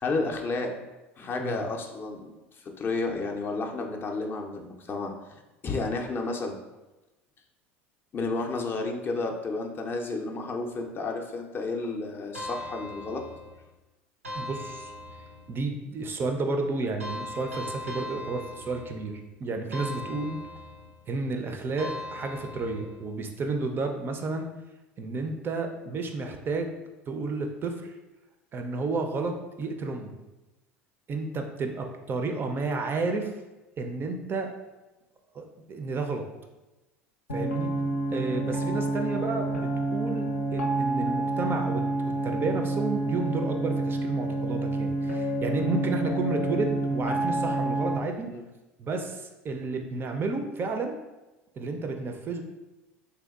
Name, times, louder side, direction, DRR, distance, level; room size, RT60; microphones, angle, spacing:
voice 1, 0.0-0.8 1.2-6.6 8.1-13.2 48.3-48.4, left 3 dB, 30° left, 2 dB, 0.4 m, -32 dB
sound 1, 12.3-13.7 14.2-15.6 17.0-19.2 19.7-21.0 21.8-23.1, left 2 dB, 90° right, 0.4 m, -39 dB
voice 2, 14.4-14.9 15.5-20.4 21.1-24.5 25.0-26.7 27.1-27.9 28.5-30.1 31.1-33.3 33.8-34.5 35.3-36.2 37.3-37.7 38.1-48.3 48.8-51.0 51.6-52.4, right 3 dB, 30° right, 4 dB, 0.4 m, -31 dB
sound 2, 37.3-47.9, right 2 dB, 80° left, 0.5 m, -28 dB
3.3 x 2.8 x 2.3 m, 1.1 s
figure-of-eight pair, 70°, 7 cm